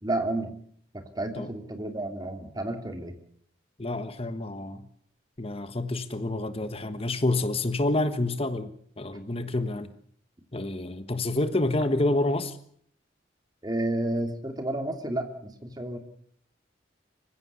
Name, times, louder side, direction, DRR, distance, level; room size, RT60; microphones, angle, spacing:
voice 1, 0.0-0.5 0.9-3.2 13.6-16.0, right 1 dB, 20° right, 2.8 m, -31 dB
voice 2, 3.8-4.9 5.4-9.9 10.5-12.6, left 2 dB, 30° left, 1.3 m, -28 dB
25.5 x 16.0 x 8.3 m
head